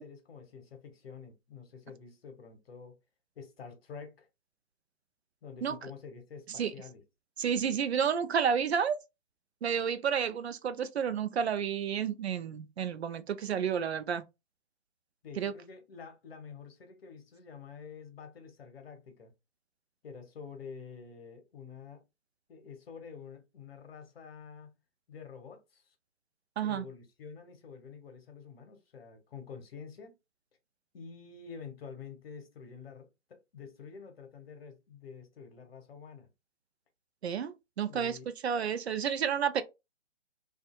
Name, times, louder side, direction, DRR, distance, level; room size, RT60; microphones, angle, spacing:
voice 1, 0.0-3.0 3.4-4.3 5.4-7.0 15.2-19.3 20.0-22.0 22.5-24.8 25.1-25.9 26.6-30.1 30.9-36.3 37.9-38.3, left 6 dB, 50° left, 1.0 m, -48 dB
voice 2, 7.4-9.0 9.6-14.2 15.4-15.5 26.6-26.8 37.2-38.2 38.4-39.6, right 7 dB, 60° right, 0.5 m, -30 dB
2.7 x 2.4 x 2.3 m
figure-of-eight pair, 140°, 37 cm